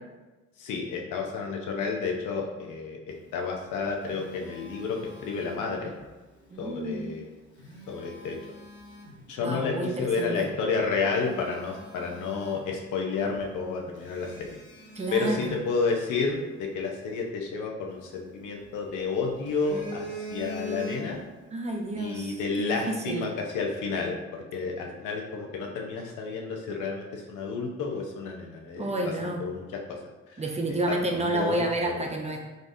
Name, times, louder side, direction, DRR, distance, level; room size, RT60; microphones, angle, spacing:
voice 1, 0.6-5.9 6.6-7.3 7.9-8.4 9.3-14.6 15.1-21.2 22.0-28.9 29.2-30.0 30.3-30.4 30.9-32.1, left 4 dB, 85° left, 1 dB, 0.8 m, -31 dB
Telephone, 3.5-6.1 7.4-9.3 9.9-10.0 10.6-10.7 11.0-13.1 13.4-13.5 14.0-16.4 17.9-18.9 19.3-21.4 21.7-21.9, equal, 40° left, 1.1 m, -42 dB
voice 2, 6.5-7.1 9.4-10.5 14.9-15.6 21.5-23.3 28.8-29.5 30.4-32.4, right 1 dB, 20° right, 1 dB, 0.6 m, -30 dB
3.9 x 3.4 x 2.6 m, 1.1 s
cardioid pair, 90°, 30 cm